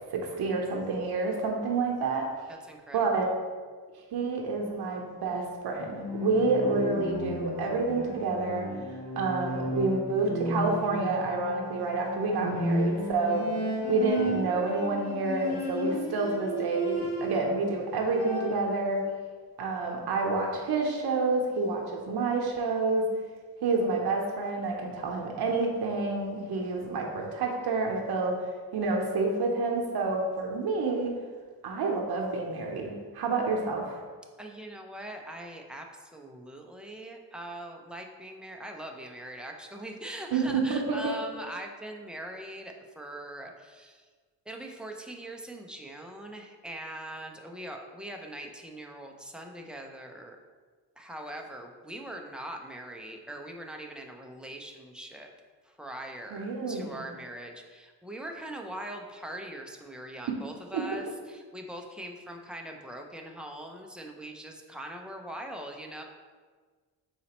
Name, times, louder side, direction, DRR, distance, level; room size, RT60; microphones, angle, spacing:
voice 1, 0.1-2.5 2.9-3.3 4.1-13.6 13.9-19.0 19.6-23.1 23.6-31.1 31.6-34.0 40.3-41.1 56.3-57.0 60.7-60.8, right 3 dB, 65° right, 1 dB, 0.7 m, -29 dB
voice 2, 2.5-3.3 34.4-44.1 44.5-50.4 51.0-55.3 55.6-66.0, right 1 dB, ahead, 1 dB, 0.4 m, -42 dB
Bowed string instrument, 5.8-17.6 17.9-18.7, equal, 55° left, 1.4 m, -33 dB
4.2 x 4.0 x 2.9 m, 1.5 s
cardioid pair, 95°, 41 cm